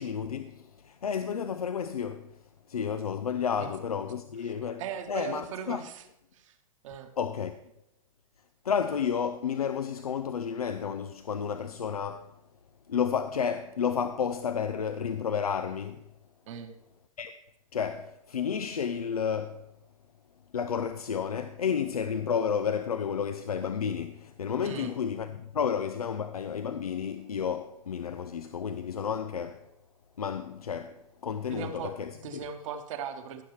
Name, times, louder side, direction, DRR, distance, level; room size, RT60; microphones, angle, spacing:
voice 1, 0.0-2.4 2.7-4.8 5.1-5.8 7.2-7.5 8.6-12.3 12.9-16.0 17.2-17.4 17.7-19.6 20.5-29.7 30.2-32.4, left 7 dB, 90° left, 0.5 m, -31 dB
voice 2, 4.8-6.1 6.3-6.6 6.8-7.1 16.5-16.7 24.6-24.9 31.5-31.9 32.2-33.4, right 7 dB, 60° right, 1.3 m, -38 dB
15.5 x 6.6 x 3.2 m
hypercardioid pair, 105°, 18 cm